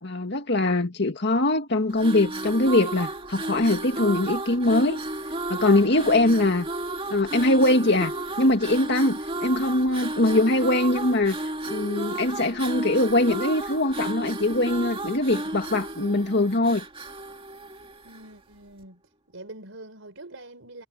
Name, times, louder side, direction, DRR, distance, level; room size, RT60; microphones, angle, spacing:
voice 1, 0.0-5.0 5.5-6.7 7.1-11.4 11.7-16.8, left 2 dB, 60° left, 2.1 m, -22 dB
voice 2, 1.8-2.6 18.0-19.0 19.3-20.9, right 1 dB, 85° right, 4.2 m, -45 dB
sound 1, 1.9-18.3, right 2 dB, 30° right, 2.2 m, -33 dB
head